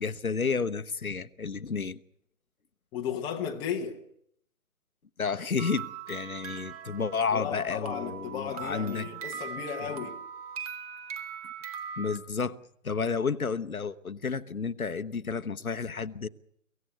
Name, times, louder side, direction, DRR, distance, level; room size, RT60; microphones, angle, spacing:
voice 1, 0.0-2.0 5.2-9.1 9.8-9.9 12.0-12.6 12.8-16.3, left 5 dB, 85° left, 1.1 m, -31 dB
voice 2, 2.9-4.0 7.0-7.1 7.3-10.2, left 8 dB, 10° left, 1.1 m, -35 dB
sound 1, 5.6-12.2, right 7 dB, 25° right, 1.7 m, -40 dB
24.5 x 16.5 x 8.1 m
figure-of-eight pair, 145°, 42 cm